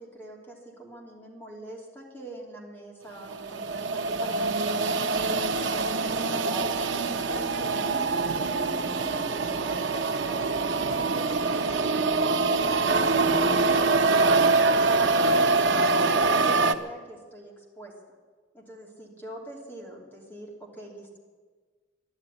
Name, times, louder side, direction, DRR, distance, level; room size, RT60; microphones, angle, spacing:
voice 1, 0.0-14.2 14.7-17.9 18.5-21.2, right 1 dB, 10° left, -2 dB, 3.0 m, -44 dB
sound 1, 3.2-16.7, right 3 dB, 90° right, 0.8 m, -24 dB
12.0 x 11.5 x 9.8 m, 1.5 s
head